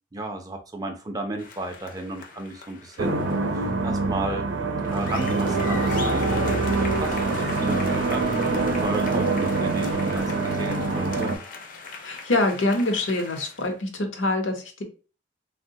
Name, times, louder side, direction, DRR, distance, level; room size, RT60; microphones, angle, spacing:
voice 1, 0.1-3.2 3.5-4.5 4.9-6.5 6.8-11.3, right 2 dB, 20° right, 4 dB, 0.3 m, -34 dB
sound 1, 1.4-3.8 4.8-13.7, left 4 dB, 45° left, 0.5 m, -39 dB
sound 2, 3.0-11.4, right 3 dB, 75° right, 0.5 m, -25 dB
voice 2, 12.0-14.8, left 2 dB, 85° left, 4 dB, 0.7 m, -25 dB
3.7 x 2.1 x 2.6 m, 0.35 s
head